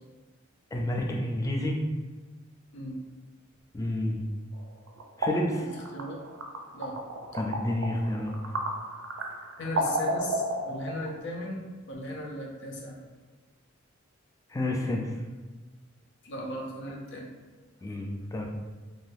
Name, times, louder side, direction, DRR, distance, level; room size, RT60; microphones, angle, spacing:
voice 1, 0.7-1.8 3.7-4.2 5.2-5.7 7.3-8.3 14.5-15.2 17.8-18.5, left 1 dB, 15° left, 1 dB, 0.3 m, -29 dB
sound 1, 4.5-11.2, right 1 dB, 80° right, 0.4 m, -33 dB
voice 2, 5.6-6.2 6.7-7.1 9.6-12.9 16.2-17.3, left 1 dB, 60° left, 0 dB, 0.6 m, -37 dB
2.6 x 2.6 x 3.3 m, 1.3 s
head